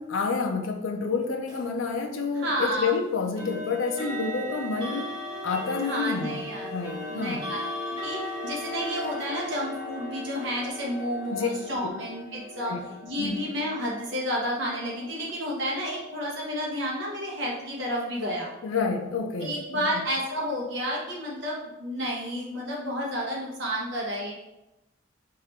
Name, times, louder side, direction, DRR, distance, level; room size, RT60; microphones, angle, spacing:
voice 1, 0.0-5.1 5.4-7.5 11.3-11.5 12.6-12.8 13.2-13.3 18.6-19.8, left 4 dB, 75° left, 3 dB, 0.5 m, -29 dB
sound 1, 1.5-1.7 3.4-16.2, left 1 dB, 20° right, 1.2 m, -38 dB
voice 2, 2.3-2.9 5.8-7.6 8.0-12.7 13.0-18.5 19.4-24.3, equal, 60° right, -4 dB, 1.2 m, -31 dB
3.7 x 2.8 x 4.3 m, 0.96 s
head